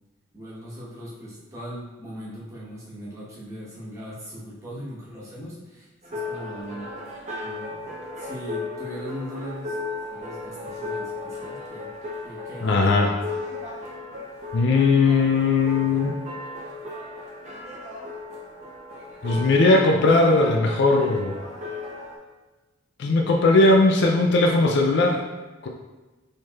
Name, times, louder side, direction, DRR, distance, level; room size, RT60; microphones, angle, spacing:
voice 1, 0.3-6.9 7.4-7.9 8.2-9.8 10.1-11.9 12.2-12.9, equal, 15° right, -8 dB, 1.0 m, -39 dB
sound 1, 6.0-22.2, left 2 dB, 35° right, 0.7 m, -36 dB
voice 2, 12.6-13.1 14.5-16.2 19.2-21.3 23.0-25.2 25.6-25.7, left 3 dB, 55° left, 1 dB, 0.3 m, -19 dB
4.4 x 3.2 x 2.3 m, 1.1 s
head